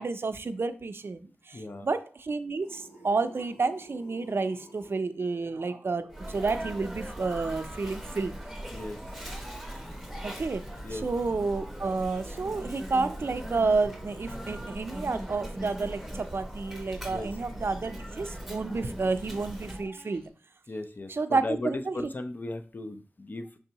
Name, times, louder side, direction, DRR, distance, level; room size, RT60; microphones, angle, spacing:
voice 1, 0.0-8.4 10.1-10.6 10.9-20.2 21.1-22.1, right 3 dB, 60° right, 10 dB, 0.4 m, -30 dB
voice 2, 1.5-1.9 8.7-9.0 10.8-11.1 17.1-17.3 20.7-23.6, left 2 dB, 45° left, 8 dB, 0.5 m, -36 dB
sound 1, 2.6-5.0, equal, 75° left, 1.1 m, -51 dB
Sneeze, 6.1-19.9, equal, ahead, 0.9 m, -40 dB
sound 2, 9.4-20.3, equal, 15° left, 1.3 m, -53 dB
5.3 x 3.3 x 2.9 m, 0.38 s
wide cardioid pair, 70°, 4 cm